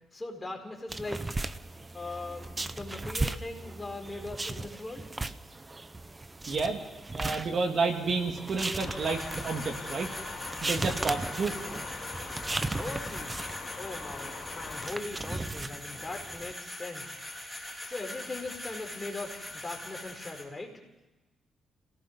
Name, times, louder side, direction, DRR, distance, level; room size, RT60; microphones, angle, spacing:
voice 1, 0.1-1.2 1.9-5.1 12.8-13.4 13.8-17.5 17.8-20.8, left 2 dB, 15° left, 2 dB, 4.6 m, -40 dB
sound 1, 0.9-16.5, right 2 dB, 20° right, 0.8 m, -37 dB
voice 2, 6.5-6.8 7.1-10.1 10.6-11.5, right 4 dB, 45° right, 4 dB, 2.4 m, -30 dB
sound 2, 8.8-14.9, left 5 dB, 40° left, 4.7 m, -43 dB
sound 3, 9.0-20.4, left 1 dB, ahead, 3.7 m, -42 dB
29.5 x 18.0 x 5.4 m, 1.1 s
cardioid pair, 115°, 0 cm